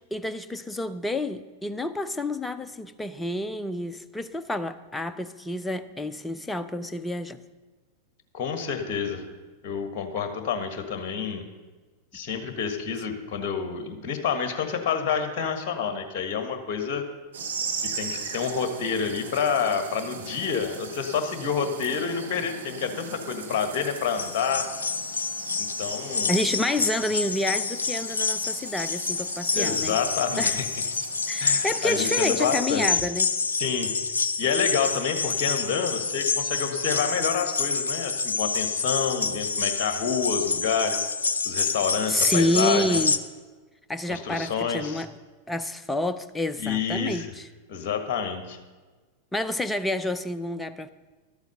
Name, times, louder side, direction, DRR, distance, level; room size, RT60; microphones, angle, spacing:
voice 1, 0.1-7.4 26.3-30.0 30.4-30.6 31.3-33.3 42.1-43.2 43.9-45.1 45.5-47.5 49.3-50.9, left 1 dB, 10° left, 11 dB, 0.6 m, -28 dB
voice 2, 8.3-9.3 9.6-11.4 12.1-17.0 17.8-24.7 25.6-26.3 29.5-30.7 31.0-31.1 31.4-33.0 33.6-33.9 34.4-41.1 41.4-43.0 44.1-45.0 46.6-47.3 47.7-48.6, left 6 dB, 40° left, 7 dB, 1.5 m, -28 dB
sound 1, 17.3-32.6, right 5 dB, 65° right, 1.5 m, -39 dB
sound 2, 24.1-43.2, left 4 dB, 70° left, 0.6 m, -28 dB
12.0 x 8.0 x 6.8 m, 1.3 s
figure-of-eight pair, 90°, 0 cm